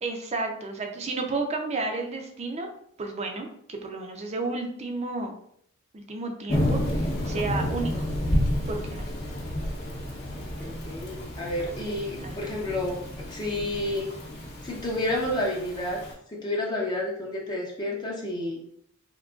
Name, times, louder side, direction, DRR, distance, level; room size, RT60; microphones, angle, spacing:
voice 1, 0.0-2.7 3.0-5.4 5.9-7.9 8.7-9.0 12.2-12.4, right 3 dB, 30° right, 4 dB, 0.5 m, -32 dB
Thunder / Rain, 6.5-16.1, left 1 dB, 50° left, 0.8 m, -30 dB
voice 2, 10.6-14.1 14.6-16.0 16.3-18.6, left 1 dB, 20° left, -2 dB, 0.5 m, -30 dB
3.7 x 2.8 x 2.4 m, 0.68 s
head